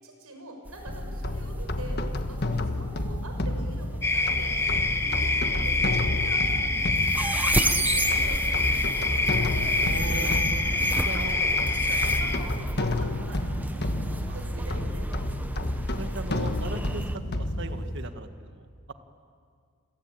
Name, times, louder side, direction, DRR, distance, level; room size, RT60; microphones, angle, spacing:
voice 1, 0.0-2.4 2.7-10.0 11.0-15.7, right 1 dB, 85° right, 3 dB, 6.3 m, -44 dB
sound 1, 0.7-17.2, right 1 dB, 10° right, 0.8 m, -34 dB
sound 2, 0.9-18.1, left 1 dB, 50° left, 1.5 m, -31 dB
sound 3, 4.0-12.4, left 3 dB, 10° left, 1.2 m, -26 dB
voice 2, 9.8-11.4 14.3-14.8 16.0-18.9, right 2 dB, 55° right, 8 dB, 1.7 m, -39 dB
28.0 x 22.5 x 9.1 m, 2.1 s
head